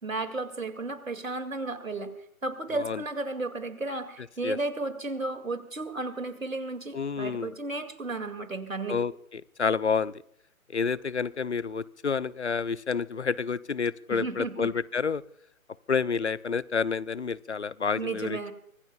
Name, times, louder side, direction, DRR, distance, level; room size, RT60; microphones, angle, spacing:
voice 1, 0.0-2.1 2.4-9.0 14.1-14.7 18.0-18.5, right 2 dB, 70° right, 10 dB, 2.3 m, -33 dB
voice 2, 2.7-3.0 4.4-4.6 6.9-7.5 8.9-10.1 10.7-15.2 15.9-18.5, left 5 dB, 55° left, 21 dB, 0.6 m, -29 dB
24.5 x 18.5 x 2.3 m, 0.69 s
figure-of-eight pair, 145°, 41 cm